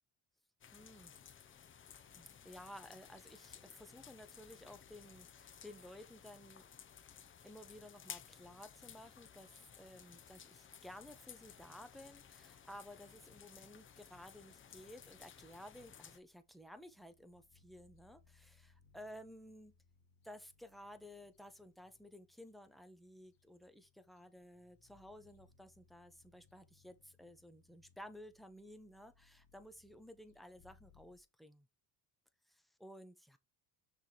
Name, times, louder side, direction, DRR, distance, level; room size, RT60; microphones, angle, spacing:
sound 1, 0.6-16.2, left 8 dB, 30° left, 0.7 m, -57 dB
voice 1, 0.7-1.1 2.2-6.6 7.4-19.7 20.2-31.7 32.5-33.4, equal, ahead, 0.9 m, -55 dB
sound 2, 15.8-31.2, left 5 dB, 60° left, 1.3 m, -71 dB
6.2 x 3.4 x 4.5 m
cardioid pair, 115°, 39 cm